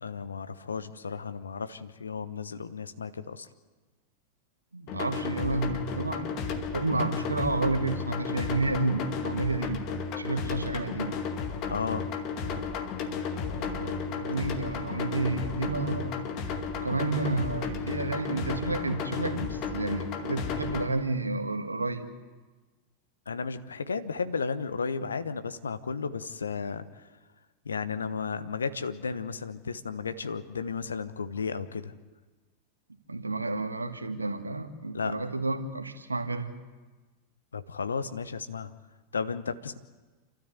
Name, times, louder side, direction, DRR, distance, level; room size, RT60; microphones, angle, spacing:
voice 1, 0.0-3.5 11.7-12.1 23.3-26.8 27.6-31.9 34.9-35.1 37.5-38.7 39.1-39.8, left 5 dB, 75° left, 11 dB, 1.1 m, -33 dB
voice 2, 4.7-6.3 6.7-9.8 10.2-11.2 13.5-16.2 16.7-22.1 33.1-36.5, right 2 dB, 80° right, 7 dB, 1.7 m, -30 dB
sound 1, 4.9-20.9, left 5 dB, 40° left, 2.2 m, -33 dB
28.5 x 13.0 x 8.0 m, 1.3 s
figure-of-eight pair, 90°, 0 cm